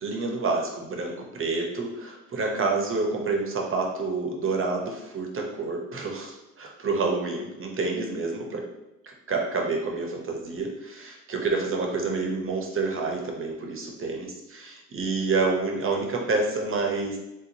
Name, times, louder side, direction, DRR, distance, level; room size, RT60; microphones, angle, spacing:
voice 1, 0.0-8.6 9.0-17.2, right 3 dB, 45° right, 1 dB, 0.8 m, -28 dB
3.5 x 2.8 x 2.7 m, 0.93 s
cardioid pair, 90°, 30 cm